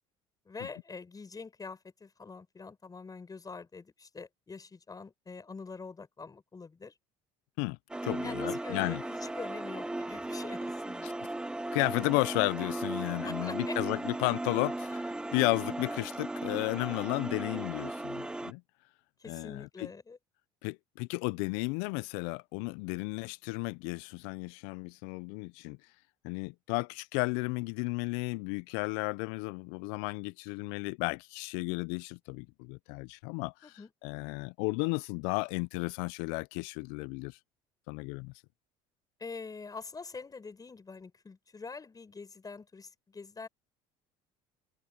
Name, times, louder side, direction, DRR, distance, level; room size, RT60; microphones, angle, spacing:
voice 1, 0.4-6.9 8.2-11.1 13.2-14.0 19.2-20.2 21.6-21.7 33.6-33.9 39.2-43.5, left 4 dB, 25° left, 6.7 m, -45 dB
sound 1, 7.9-18.5, right 2 dB, 5° right, 0.3 m, -36 dB
voice 2, 8.0-9.0 11.0-11.1 11.7-18.6 19.3-19.9 20.6-25.8 26.2-33.7 34.0-37.4 37.9-38.3, left 27 dB, 80° left, 0.5 m, -33 dB
supercardioid pair, 85°, 15 cm